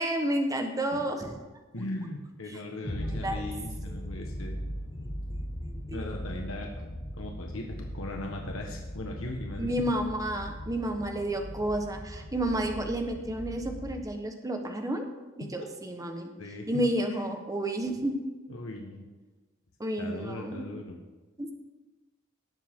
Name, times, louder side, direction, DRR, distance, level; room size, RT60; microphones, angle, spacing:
voice 1, 0.0-1.3 2.8-2.9 3.2-3.4 5.6-6.0 9.6-15.0 15.4-16.3 16.7-18.2 19.8-20.6 21.4-21.5, right 1 dB, 15° right, 4 dB, 1.1 m, -31 dB
voice 2, 1.7-4.6 5.6-6.9 7.2-9.8 15.4-15.5 16.4-17.4 18.5-19.1 20.0-21.0, left 1 dB, 70° left, 1 dB, 1.4 m, -39 dB
sound 1, 2.8-14.0, equal, 35° left, 1.1 m, -39 dB
18.0 x 7.5 x 3.7 m, 1.2 s
head